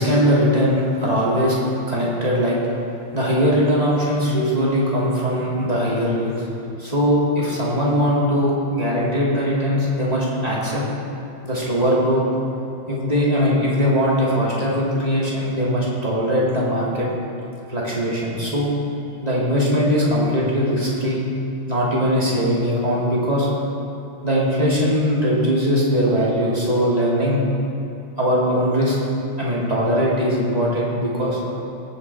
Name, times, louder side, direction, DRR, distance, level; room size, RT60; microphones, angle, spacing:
voice 1, 0.0-1.6 1.9-2.6 3.1-6.5 6.8-10.8 11.4-12.2 12.9-17.1 17.7-18.7 19.2-21.2 21.7-23.5 24.2-27.4 28.2-29.0 29.4-31.4, equal, 20° right, -6 dB, 2.5 m, -20 dB
18.0 x 6.4 x 4.6 m, 2.8 s
omnidirectional pair, 2.3 m